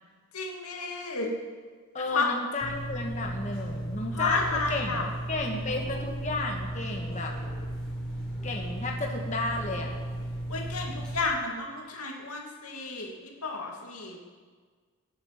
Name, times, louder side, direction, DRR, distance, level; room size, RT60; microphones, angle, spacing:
voice 1, 0.3-1.3 2.1-2.3 4.1-5.0 10.5-13.1 13.4-14.2, left 3 dB, 90° left, 0 dB, 2.4 m, -31 dB
voice 2, 1.9-7.4 8.4-9.9, left 2 dB, 30° left, 0 dB, 1.6 m, -33 dB
sound 1, 2.6-11.2, right 1 dB, 5° left, 4.5 m, -35 dB
23.5 x 8.7 x 6.0 m, 1.5 s
head